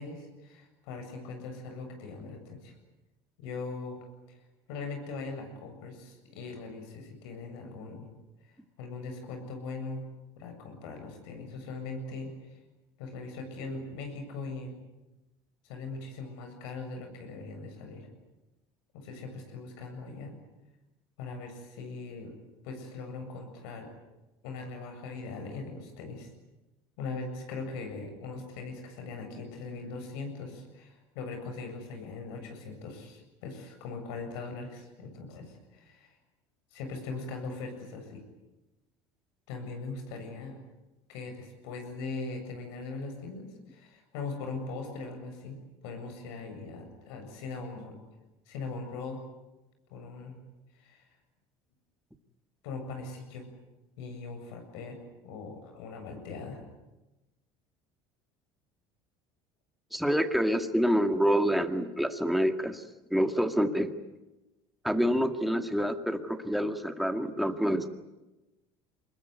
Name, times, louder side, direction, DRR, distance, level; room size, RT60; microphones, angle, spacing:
voice 1, 0.0-2.8 3.4-4.0 4.3-4.4 4.7-8.1 8.4-10.0 10.4-12.6 13.0-14.7 15.6-18.1 18.9-20.4 21.2-22.3 22.6-23.9 24.4-26.3 27.0-36.2 36.7-38.2 39.5-40.6 41.1-48.0 48.5-49.2 49.9-50.4 50.7-51.1 52.6-53.5 54.0-56.6, left 3 dB, 85° left, 5 dB, 7.6 m, -40 dB
voice 2, 59.9-62.8 63.1-63.9 64.8-67.9, equal, ahead, 7 dB, 2.0 m, -27 dB
25.0 x 21.0 x 9.5 m, 1.0 s
supercardioid pair, 115°, 13 cm